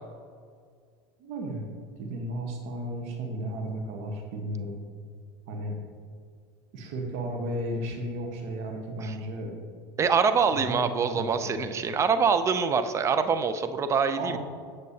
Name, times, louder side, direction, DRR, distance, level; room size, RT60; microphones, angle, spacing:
voice 1, 1.2-1.7 2.0-4.7 5.5-5.8 6.7-9.5 10.5-11.6 14.2-14.4, right 1 dB, 60° right, 2 dB, 1.2 m, -34 dB
voice 2, 10.0-14.4, right 5 dB, 25° right, 10 dB, 0.5 m, -25 dB
8.3 x 6.5 x 2.8 m, 2.1 s
hypercardioid pair, 105°, 12 cm